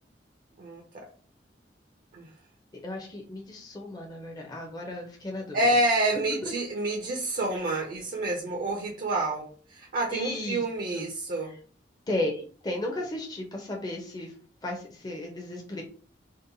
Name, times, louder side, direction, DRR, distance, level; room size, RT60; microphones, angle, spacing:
voice 1, 0.6-1.1 2.1-2.3 5.5-11.5, right 2 dB, 50° right, 0 dB, 0.4 m, -28 dB
voice 2, 2.8-5.6 6.4-6.5 10.1-10.6 10.9-11.1 12.1-14.3 14.6-15.8, left 1 dB, 20° left, 0 dB, 0.5 m, -34 dB
2.7 x 2.1 x 2.6 m, 0.42 s
head